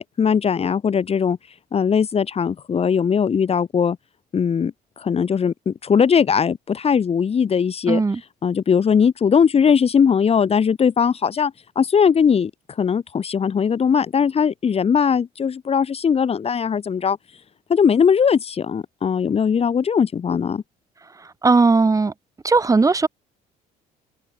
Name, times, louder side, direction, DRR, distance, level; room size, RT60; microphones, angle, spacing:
voice 1, 0.0-1.4 1.7-4.0 4.3-8.0 8.4-12.5 12.8-17.2 17.7-20.6, left 7 dB, 35° left, 2.2 m, -19 dB
voice 2, 7.9-8.2 21.4-22.1 22.4-23.1, right 4 dB, 20° right, 1.7 m, -17 dB
cardioid pair, 110°, 17 cm